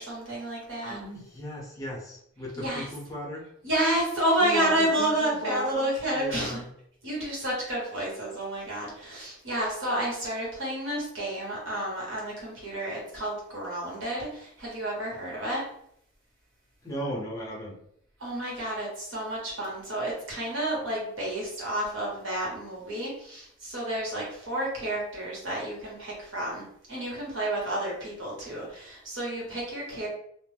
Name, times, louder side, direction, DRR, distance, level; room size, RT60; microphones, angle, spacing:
voice 1, 0.0-1.0 2.6-2.9 3.6-6.6 7.0-15.6 18.2-30.1, right 1 dB, 75° right, -4 dB, 1.2 m, -30 dB
voice 2, 0.8-3.5 4.4-6.7 16.8-17.8, equal, 15° left, -4 dB, 0.7 m, -36 dB
2.5 x 2.0 x 3.2 m, 0.69 s
head